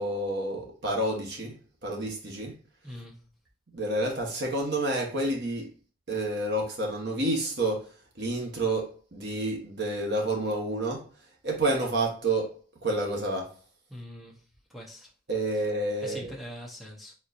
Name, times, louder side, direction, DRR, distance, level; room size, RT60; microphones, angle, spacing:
voice 1, 0.0-1.5 1.8-2.6 3.7-5.7 6.1-7.9 8.2-11.1 11.4-12.5 12.8-13.5 15.3-16.3, right 1 dB, 50° right, 1.2 m, -29 dB
voice 2, 2.8-3.2 13.9-14.4 14.7-15.1 16.0-17.1, equal, ahead, 0.8 m, -43 dB
4.4 x 3.9 x 2.6 m
head